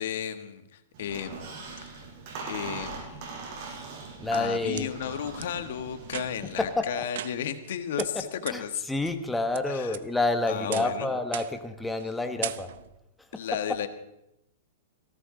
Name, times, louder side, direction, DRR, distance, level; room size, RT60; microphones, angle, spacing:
voice 1, 0.0-2.0 2.5-3.4 4.3-8.0 8.4-8.8 9.7-10.0 10.5-11.1 13.3-13.9, left 9 dB, 70° left, 9 dB, 1.5 m, -34 dB
Squeak, 0.9-6.7, right 4 dB, 50° right, 6.4 m, -41 dB
sound 1, 3.9-4.9 5.4-5.5 6.0-6.6 7.1-7.7 8.0-8.1 8.5-8.6 9.1-9.6 9.9-10.3 10.7-11.0 11.3-11.7 12.0-12.1 12.4-13.0, right 11 dB, 70° right, 0.8 m, -38 dB
voice 2, 4.2-4.9 6.6-7.0 8.0-8.1 8.5-12.7 13.2-13.4, left 2 dB, 5° left, 6 dB, 1.1 m, -29 dB
19.0 x 17.0 x 3.9 m, 0.85 s
hypercardioid pair, 150°, 0 cm